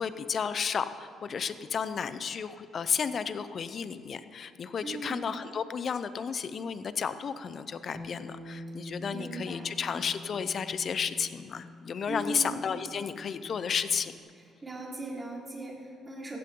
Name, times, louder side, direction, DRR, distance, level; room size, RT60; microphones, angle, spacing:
voice 1, 0.0-14.1, left 6 dB, 55° left, 13 dB, 0.8 m, -32 dB
voice 2, 4.8-5.2 9.0-9.7 12.1-12.5 14.6-16.4, right 2 dB, 25° right, -3 dB, 4.6 m, -38 dB
Bass guitar, 7.9-14.2, left 2 dB, 5° left, 1.9 m, -46 dB
15.5 x 15.0 x 3.9 m, 2.2 s
supercardioid pair, 65°, 0 cm